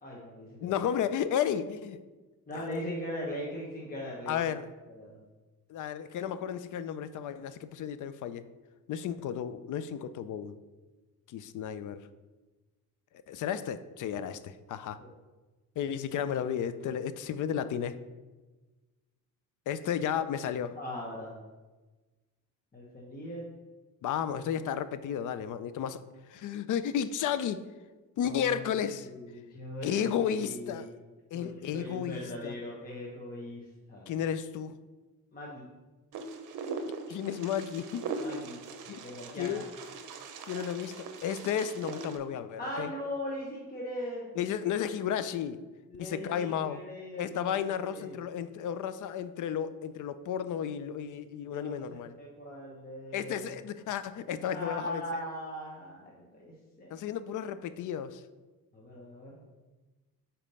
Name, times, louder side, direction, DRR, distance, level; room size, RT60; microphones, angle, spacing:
voice 1, 0.0-0.7 2.5-4.6 5.0-5.2 15.0-15.1 20.7-21.3 22.7-23.4 28.2-28.6 29.0-30.8 31.3-34.1 35.3-35.7 38.2-38.6 39.0-39.6 42.6-44.4 45.9-48.2 51.5-53.5 54.5-57.0 58.7-59.4, left 1 dB, 25° left, -4 dB, 1.1 m, -40 dB
voice 2, 0.6-2.0 2.5-2.7 4.3-4.7 5.7-8.5 8.9-10.6 11.3-12.0 13.3-15.0 15.8-18.0 19.7-20.8 24.0-26.0 26.3-27.7 28.2-29.1 29.8-30.9 31.3-32.6 34.1-34.8 37.1-38.0 38.9-39.0 39.4-39.7 40.5-42.9 44.4-45.6 46.0-46.8 47.2-52.1 53.1-55.0 56.9-58.2, left 8 dB, 60° left, 13 dB, 0.5 m, -33 dB
Wind, 36.1-42.2, right 4 dB, 60° right, 0.8 m, -40 dB
5.1 x 4.3 x 5.4 m, 1.2 s
cardioid pair, 125°, 36 cm